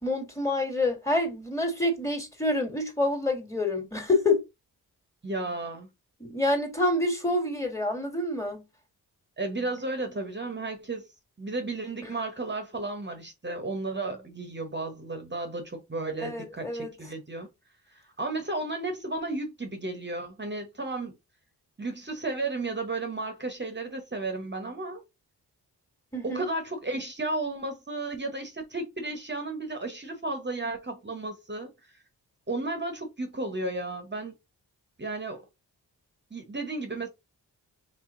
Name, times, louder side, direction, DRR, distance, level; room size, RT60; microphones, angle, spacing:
voice 1, 0.0-4.4 6.2-8.6 16.2-16.9 26.1-26.4, left 2 dB, 5° left, 1.8 m, -27 dB
voice 2, 5.2-5.9 9.4-11.1 11.4-17.5 17.9-21.1 21.8-25.0 26.2-31.7 32.5-34.3 35.0-35.4 36.3-37.1, right 2 dB, 25° right, 1.0 m, -33 dB
3.4 x 2.8 x 3.7 m
cardioid pair, 60°, 40 cm